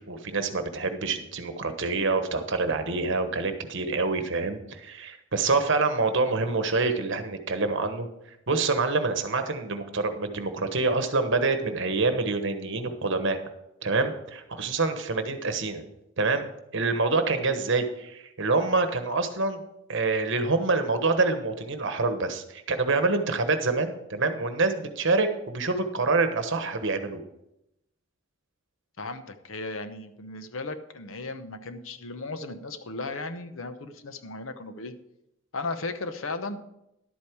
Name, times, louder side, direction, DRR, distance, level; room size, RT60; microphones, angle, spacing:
voice 1, 0.0-8.1 8.5-13.4 13.8-15.8 16.2-19.6 19.9-27.2, right 3 dB, 60° right, 8 dB, 1.2 m, -26 dB
voice 2, 29.0-34.9 35.5-36.6, left 3 dB, 70° left, 10 dB, 0.9 m, -36 dB
11.5 x 8.6 x 4.7 m, 0.84 s
head